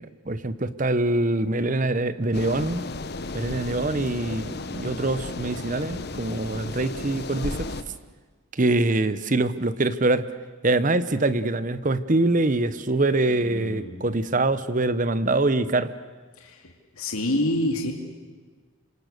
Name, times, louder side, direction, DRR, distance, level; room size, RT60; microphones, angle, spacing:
voice 1, 0.0-2.8 3.3-7.7 8.5-10.3 10.6-15.9, right 2 dB, 35° right, 14 dB, 0.9 m, -24 dB
sound 1, 2.3-7.8, left 2 dB, 50° left, 1.1 m, -34 dB
voice 2, 13.1-14.1 16.4-17.9, left 1 dB, 90° left, 2 dB, 2.4 m, -28 dB
27.5 x 25.5 x 6.7 m, 1.4 s
head